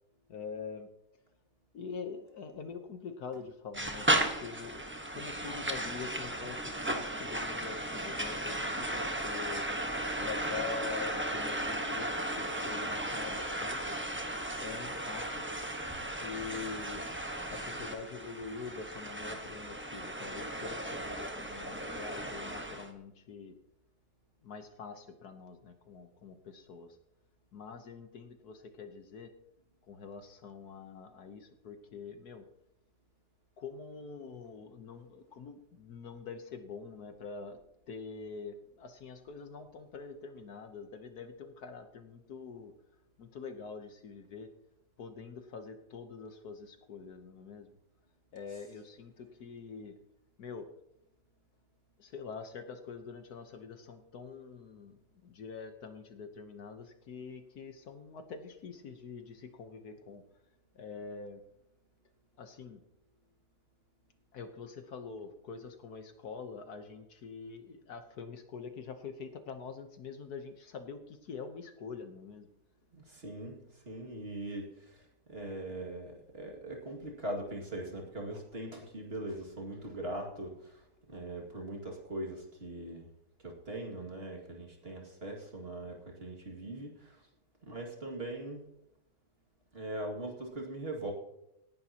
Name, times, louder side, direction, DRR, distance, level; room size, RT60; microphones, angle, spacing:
voice 1, 0.3-0.9 1.7-4.8 5.1-9.6 10.2-12.1 12.4-14.0 14.6-15.4 16.2-17.0 17.5-23.5 24.4-27.0 27.5-29.3 29.9-32.5 33.6-37.6 37.9-42.7 43.2-44.5 45.0-47.7 48.3-49.9 50.4-50.6 52.0-60.2 60.7-61.4 62.4-62.8 64.3-72.5, left 5 dB, 65° left, 7 dB, 1.5 m, -45 dB
sound 1, 3.7-22.9, right 1 dB, 10° right, 1.0 m, -35 dB
voice 2, 72.9-75.0 75.3-80.8 81.1-83.1 83.4-87.2 87.6-88.6 89.7-91.1, right 1 dB, 35° right, 1 dB, 2.4 m, -41 dB
18.0 x 11.5 x 2.9 m, 0.84 s
omnidirectional pair, 1.8 m